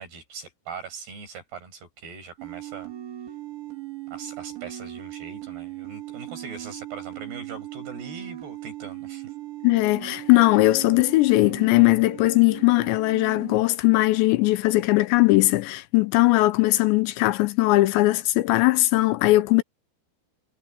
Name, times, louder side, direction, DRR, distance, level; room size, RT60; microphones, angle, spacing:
voice 1, 0.0-2.9 4.1-9.3, right 5 dB, 60° right, 8.1 m, -41 dB
sound 1, 2.4-13.6, right 15 dB, 75° right, 5.7 m, -38 dB
voice 2, 9.6-19.6, left 19 dB, 85° left, 2.9 m, -19 dB
omnidirectional pair, 5.3 m